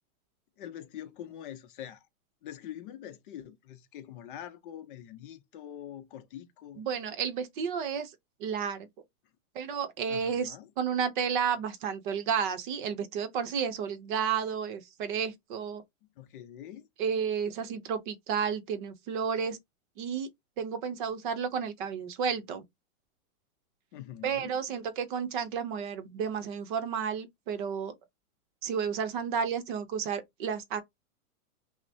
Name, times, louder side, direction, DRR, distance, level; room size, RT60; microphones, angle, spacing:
voice 1, 0.6-2.1 2.4-6.8 10.1-10.7 16.2-16.9 23.9-24.5, left 11 dB, 40° left, 0.6 m, -44 dB
voice 2, 6.8-8.1 8.4-8.9 9.5-15.8 17.0-19.6 20.0-20.3 20.6-22.6 24.2-27.9 28.6-30.8, right 7 dB, 35° right, 0.7 m, -32 dB
5.8 x 2.1 x 2.7 m
supercardioid pair, 155°, 42 cm